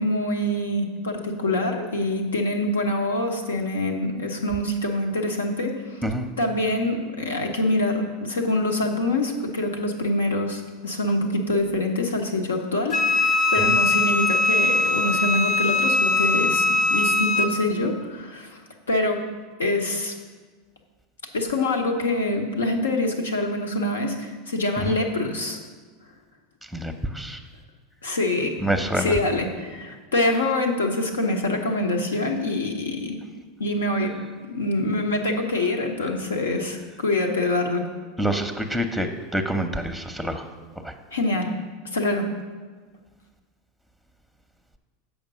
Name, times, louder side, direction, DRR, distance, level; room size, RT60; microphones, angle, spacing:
voice 1, 0.0-6.0 6.4-18.6 18.9-19.2 19.6-20.1 21.3-25.6 28.0-28.6 28.9-33.2 33.6-34.1 34.4-37.9 41.1-41.5 41.9-42.3, left 1 dB, 90° left, 3 dB, 1.0 m, -25 dB
Wind instrument woodwind instrument, 12.9-17.5, left 2 dB, 50° left, 0.9 m, -21 dB
voice 2, 26.7-27.4 28.6-29.2 38.2-39.1 39.3-40.5 40.8-40.9, right 1 dB, 5° left, 7 dB, 0.7 m, -26 dB
7.4 x 5.2 x 6.1 m, 1.4 s
hypercardioid pair, 90°, 0 cm